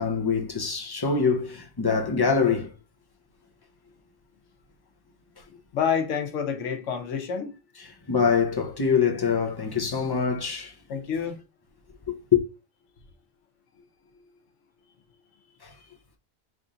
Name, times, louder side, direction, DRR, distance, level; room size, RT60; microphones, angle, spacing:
voice 1, 0.0-2.7 5.4-5.5 7.8-10.7 12.1-12.4 15.6-15.7, left 6 dB, 30° left, 0.4 m, -24 dB
voice 2, 5.7-7.5 10.9-11.4, left 7 dB, 85° left, 1.1 m, -28 dB
3.5 x 2.5 x 3.9 m
omnidirectional pair, 1.3 m